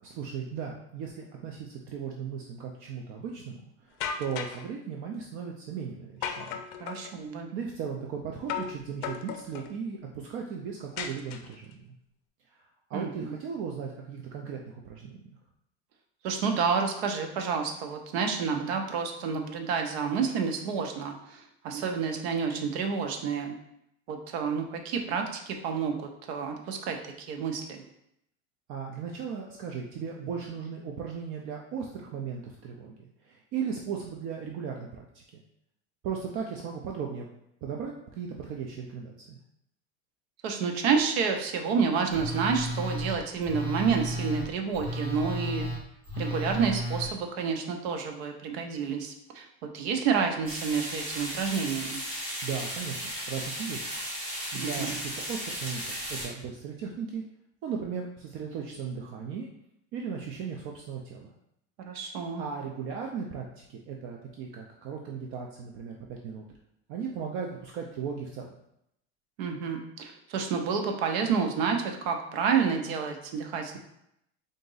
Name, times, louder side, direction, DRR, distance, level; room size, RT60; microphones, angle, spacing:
voice 1, 0.0-6.6 7.5-11.9 12.9-15.2 28.7-35.4 36.0-37.3 37.6-39.4 52.4-53.0 53.3-53.9 54.5-57.2 57.6-59.5 59.9-61.3 62.4-66.4 66.9-68.5, right 6 dB, 40° right, 0 dB, 0.4 m, -37 dB
sound 1, 4.0-4.7 6.2-7.1 8.5-8.8 9.0-9.7 11.0-11.7, left 7 dB, 60° left, 0.5 m, -35 dB
voice 2, 6.8-7.5 12.9-13.3 16.2-23.5 24.1-27.8 40.4-45.7 46.2-49.5 49.7-52.0 54.5-55.0 61.8-62.4 69.4-73.8, right 6 dB, 75° right, 4 dB, 0.8 m, -29 dB
Telephone, 42.1-47.1, equal, 15° left, 1.6 m, -33 dB
sound 2, 50.5-56.3, equal, 15° right, 1.5 m, -35 dB
3.8 x 2.6 x 3.9 m, 0.77 s
supercardioid pair, 150°, 32 cm